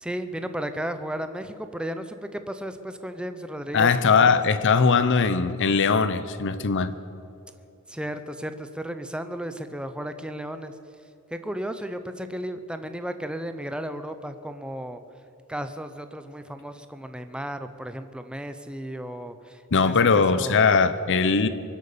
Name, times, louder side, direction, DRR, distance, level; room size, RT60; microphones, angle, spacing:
voice 1, 0.0-4.4 7.9-10.7 11.3-15.0 15.5-20.7, right 1 dB, 5° right, 0.7 m, -34 dB
voice 2, 3.7-6.9 19.7-21.5, left 5 dB, 60° left, 0.7 m, -20 dB
23.0 x 8.2 x 6.8 m
head